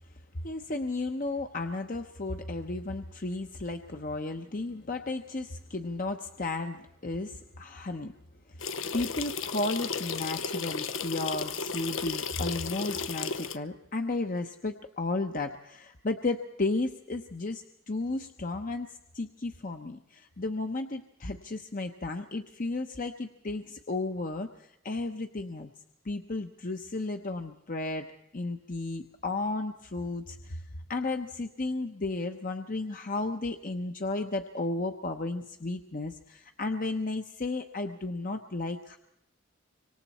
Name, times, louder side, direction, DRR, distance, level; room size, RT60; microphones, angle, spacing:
voice 1, 0.4-8.1 8.5-25.7 26.0-28.1 28.3-39.0, left 2 dB, 45° left, 5 dB, 0.9 m, -34 dB
sound 1, 8.6-13.6, left 5 dB, 80° left, 0.8 m, -34 dB
25.5 x 24.5 x 4.3 m, 0.80 s
head